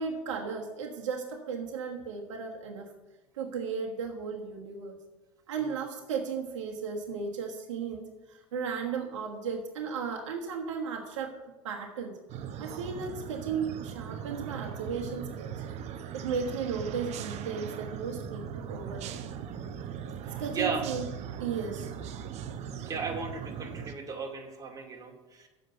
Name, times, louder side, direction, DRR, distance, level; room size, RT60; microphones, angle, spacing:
voice 1, 0.0-2.9 3.3-5.0 5.5-11.3 11.6-12.2 12.6-15.6 16.1-19.1 20.2-21.0 21.4-21.9, right 6 dB, 75° right, 2 dB, 1.4 m, -35 dB
sound 1, 12.3-23.9, right 8 dB, 45° right, 0.9 m, -39 dB
voice 2, 20.2-20.9 22.9-25.5, right 5 dB, 20° right, 1 dB, 2.3 m, -36 dB
7.6 x 6.6 x 7.9 m, 1.1 s
hypercardioid pair, 85°, 16 cm